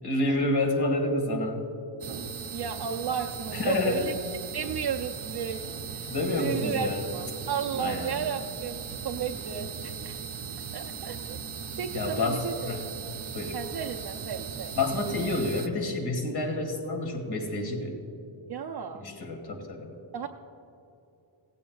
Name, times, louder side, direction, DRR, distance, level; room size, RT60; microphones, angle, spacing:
voice 1, 0.0-1.7 3.5-4.1 6.1-7.1 7.8-8.2 11.9-12.9 13.3-13.6 14.7-18.0 19.0-19.9, left 2 dB, 55° left, 2 dB, 1.9 m, -29 dB
sound 1, 2.0-15.7, right 6 dB, 90° right, 0.9 m, -38 dB
voice 2, 2.5-4.2 4.5-5.6 5.9-10.2 10.7-11.4 11.8-12.7 13.5-14.8 18.5-19.0 20.1-20.3, right 7 dB, 55° right, 1 dB, 0.6 m, -34 dB
17.5 x 15.5 x 2.4 m, 2.8 s
wide cardioid pair, 160°, 48 cm